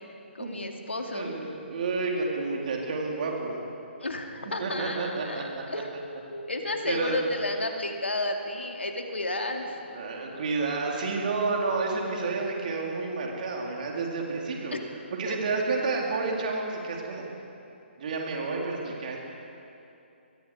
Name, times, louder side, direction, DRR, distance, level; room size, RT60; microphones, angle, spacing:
voice 1, 0.3-1.3 4.0-6.0 6.3-9.8 14.7-14.8 15.3-15.4, left 2 dB, 75° left, 3 dB, 2.6 m, -32 dB
voice 2, 1.1-3.6 4.6-5.7 6.9-7.2 9.9-14.7 15.1-17.2 18.0-19.2, right 3 dB, 45° right, -1 dB, 4.0 m, -30 dB
25.0 x 21.5 x 5.0 m, 2.8 s
figure-of-eight pair, 135°, 6 cm